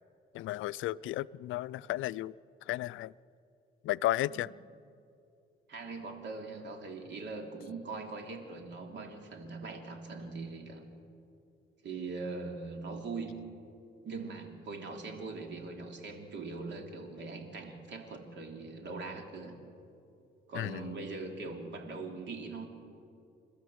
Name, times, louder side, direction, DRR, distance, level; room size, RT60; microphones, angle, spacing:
voice 1, 0.3-2.3 2.7-3.1 3.8-4.5 20.6-20.9, left 16 dB, 80° left, 17 dB, 0.4 m, -33 dB
voice 2, 5.7-10.8 11.8-13.4 14.0-19.6 20.5-22.7, right 3 dB, 65° right, 3 dB, 3.2 m, -41 dB
29.5 x 12.5 x 7.9 m, 2.7 s
cardioid pair, 90°, 20 cm